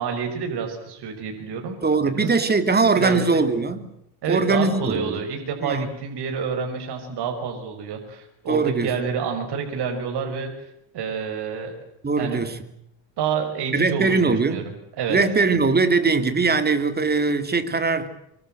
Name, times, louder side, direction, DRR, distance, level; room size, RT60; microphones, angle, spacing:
voice 1, 0.0-1.8 2.2-2.3 3.0-3.4 4.2-10.5 10.9-11.8 12.2-12.4 13.2-14.6 15.0-15.2, right 6 dB, 55° right, 5.8 m, -28 dB
voice 2, 1.8-3.9 4.3-5.2 5.6-5.9 8.5-8.9 12.0-12.6 13.7-14.7 15.1-18.1, right 4 dB, 20° right, 3.0 m, -21 dB
25.0 x 25.0 x 7.8 m
cardioid pair, 125°, 46 cm